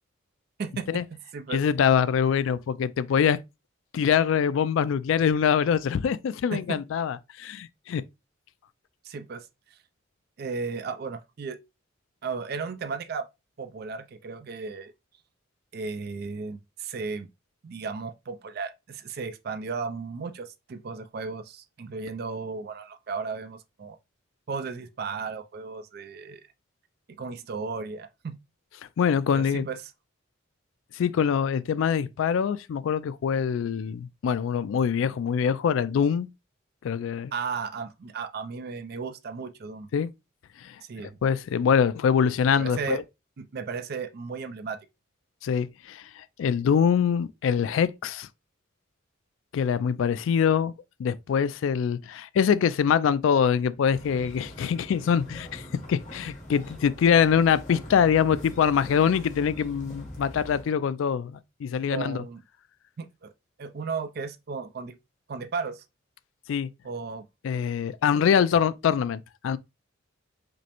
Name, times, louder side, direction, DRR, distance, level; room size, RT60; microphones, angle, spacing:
voice 1, 0.6-1.0 1.3-1.6 6.5-6.8 9.0-9.5 10.4-11.6 12.2-13.3 13.6-14.9 15.7-17.3 17.6-24.0 24.5-26.4 27.1-28.4 29.3-29.8 37.3-39.9 40.8-41.2 42.5-43.0 43.4-44.8 61.9-62.4 63.0-63.3 63.6-64.9 65.3-65.8 66.8-67.2, right 5 dB, 50° right, 0.4 m, -35 dB
voice 2, 1.5-3.4 3.9-8.0 29.0-29.7 30.9-36.3 36.8-37.3 39.9-40.1 40.6-40.8 41.2-43.0 45.4-48.3 49.5-50.7 51.0-55.6 55.9-62.2 66.5-66.7 67.4-69.6, left 7 dB, 75° left, 0.3 m, -24 dB
sound 1, 53.9-60.6, left 1 dB, 40° left, 1.2 m, -43 dB
5.1 x 2.0 x 2.9 m
head